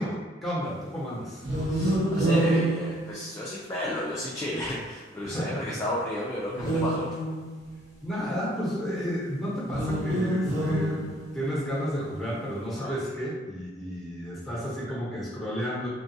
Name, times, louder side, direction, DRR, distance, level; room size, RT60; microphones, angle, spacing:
voice 1, 0.0-1.5 5.2-5.8 8.0-15.9, equal, ahead, -7 dB, 0.8 m, -32 dB
sound 1, 1.4-3.7 6.5-7.8 9.6-11.5, right 1 dB, 50° right, 1.3 m, -27 dB
voice 2, 1.7-7.2, left 1 dB, 15° left, -7 dB, 0.3 m, -32 dB
2.9 x 2.3 x 2.6 m, 1.4 s
head